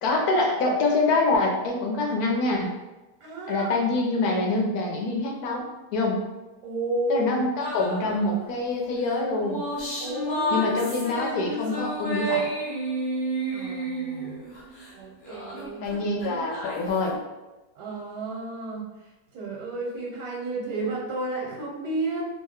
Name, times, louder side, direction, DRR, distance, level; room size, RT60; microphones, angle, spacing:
voice 1, 0.0-2.7 3.5-6.2 7.1-9.6 10.5-12.5 15.8-17.2, left 2 dB, 70° left, 0 dB, 1.1 m, -25 dB
voice 2, 3.2-3.7 6.6-7.3 10.0-11.0 13.5-14.4 14.9-15.9 17.7-18.9 19.3-22.3, right 2 dB, 70° right, -3 dB, 1.2 m, -32 dB
sound 1, 7.6-8.4 9.1-14.9 15.2-17.1, right 1 dB, 50° left, 1.3 m, -31 dB
2.9 x 2.1 x 3.5 m, 1.1 s
omnidirectional pair, 1.7 m